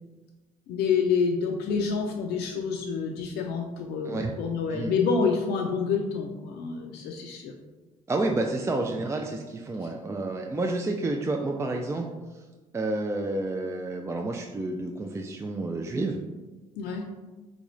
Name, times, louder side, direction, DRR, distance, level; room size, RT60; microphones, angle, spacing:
voice 1, 0.7-7.5 9.8-9.9 16.8-17.0, left 5 dB, 65° left, 1 dB, 0.4 m, -28 dB
voice 2, 8.1-12.0 12.7-16.2, right 2 dB, 15° right, 2 dB, 0.3 m, -29 dB
3.6 x 2.4 x 3.1 m, 1.2 s
hypercardioid pair, 60°, 18 cm